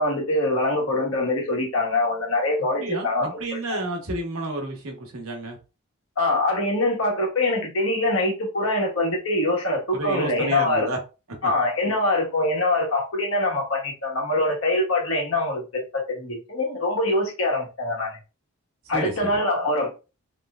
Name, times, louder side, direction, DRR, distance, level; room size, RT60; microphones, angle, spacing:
voice 1, 0.0-3.4 3.7-3.8 6.2-10.9 11.4-15.6 15.9-18.2 18.9-19.9, left 2 dB, 75° left, 1.3 m, -24 dB
voice 2, 2.8-5.6 9.9-11.0 11.4-11.5 18.9-19.3, right 2 dB, 70° right, 0.9 m, -30 dB
3.2 x 3.0 x 2.3 m
head